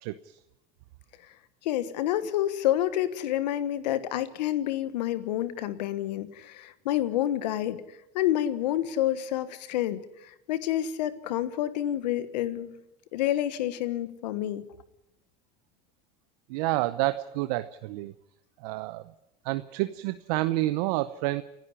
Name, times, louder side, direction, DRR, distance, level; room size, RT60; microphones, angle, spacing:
voice 1, 0.0-0.4 16.5-18.1 18.6-19.0 19.4-21.4, right 18 dB, 70° right, 12 dB, 0.8 m, -29 dB
voice 2, 1.6-7.8 8.1-12.8 13.1-14.6, left 12 dB, 80° left, 14 dB, 1.4 m, -28 dB
29.5 x 10.5 x 9.8 m, 0.89 s
hypercardioid pair, 80°, 21 cm